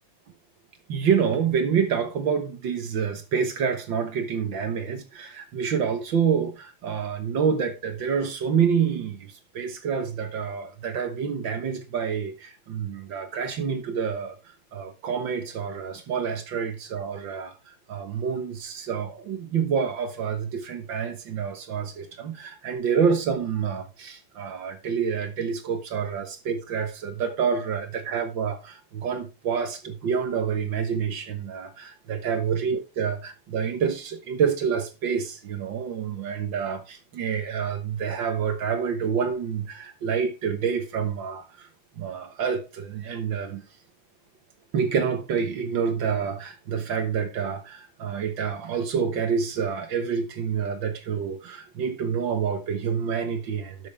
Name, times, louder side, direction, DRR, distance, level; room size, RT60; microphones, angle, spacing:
voice 1, 0.9-14.3 14.7-41.7 42.0-43.6 44.7-53.9, right 6 dB, 55° right, 1.5 m, -27 dB
12.0 x 6.4 x 3.3 m
omnidirectional pair, 3.3 m